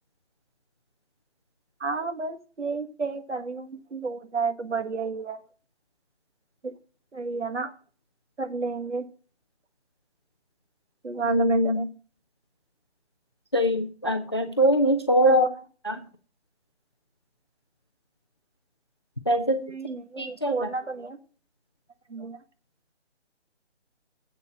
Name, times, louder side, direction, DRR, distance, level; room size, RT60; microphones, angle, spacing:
voice 1, 1.8-5.4 6.6-6.7 7.1-7.7 8.4-9.0 11.0-11.9 15.3-15.5 19.6-21.2 22.1-22.4, right 4 dB, 85° right, 7 dB, 1.6 m, -31 dB
voice 2, 11.2-11.8 13.5-15.5 15.8-16.0 19.3-19.6 20.2-20.7, equal, 25° left, 7 dB, 0.4 m, -22 dB
8.1 x 6.7 x 5.4 m, 0.39 s
figure-of-eight pair, 155°, 34 cm